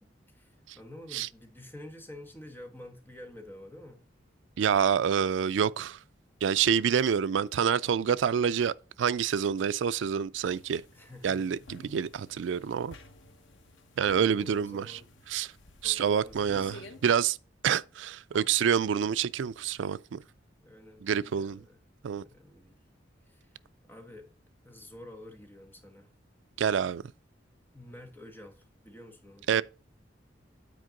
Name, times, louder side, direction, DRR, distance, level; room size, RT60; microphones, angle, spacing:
voice 1, 0.3-4.0 10.9-11.7 14.2-15.1 15.8-16.8 18.3-18.5 20.6-21.8 22.2-22.8 23.3-23.5 23.9-24.3 24.6-26.1 27.7-29.6, left 1 dB, 10° left, 1.3 m, -49 dB
voice 2, 4.6-6.0 6.4-10.8 11.2-12.9 14.0-15.0 15.3-15.5 15.8-17.4 17.6-20.2 21.0-21.6 22.0-22.2 26.6-27.0 29.5-29.6, right 7 dB, 80° right, 0.4 m, -27 dB
sound 1, 10.5-17.2, left 2 dB, 85° left, 0.9 m, -52 dB
9.2 x 4.4 x 3.8 m
head